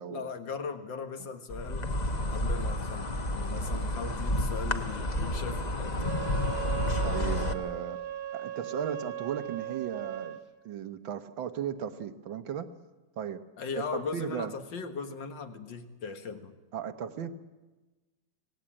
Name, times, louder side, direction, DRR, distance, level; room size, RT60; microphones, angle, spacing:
voice 1, 0.1-1.9 2.3-6.2 13.6-16.5, left 5 dB, 75° left, 7 dB, 2.3 m, -39 dB
Insect, 1.5-7.5, left 1 dB, 30° left, 1.0 m, -30 dB
Wind instrument woodwind instrument, 6.0-10.4, right 11 dB, 60° right, 1.5 m, -37 dB
voice 2, 7.0-8.0 8.3-10.4 10.7-12.7 13.2-13.4 13.9-14.6 16.7-17.3, right 8 dB, 90° right, 10 dB, 1.9 m, -36 dB
25.0 x 18.0 x 8.9 m, 1.2 s
omnidirectional pair, 2.0 m